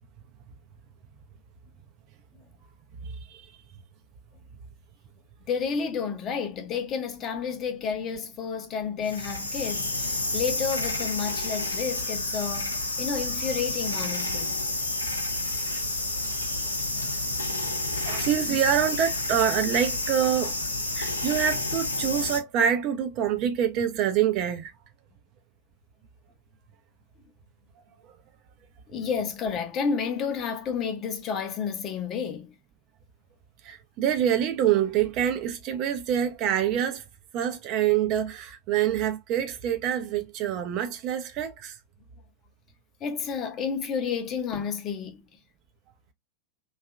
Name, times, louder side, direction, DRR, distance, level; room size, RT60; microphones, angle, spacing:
voice 1, 5.5-14.6 18.0-18.2 28.9-32.5 43.0-45.3, left 6 dB, 30° left, 0.6 m, -31 dB
sound 1, 9.0-22.4, left 2 dB, 80° left, 0.6 m, -30 dB
voice 2, 15.1-15.6 16.0-17.5 17.9-20.6 20.9-24.7 28.0-28.1 33.6-37.1 37.3-41.8, right 9 dB, 40° right, 0.5 m, -26 dB
2.7 x 2.3 x 2.3 m
figure-of-eight pair, 90°, 0 cm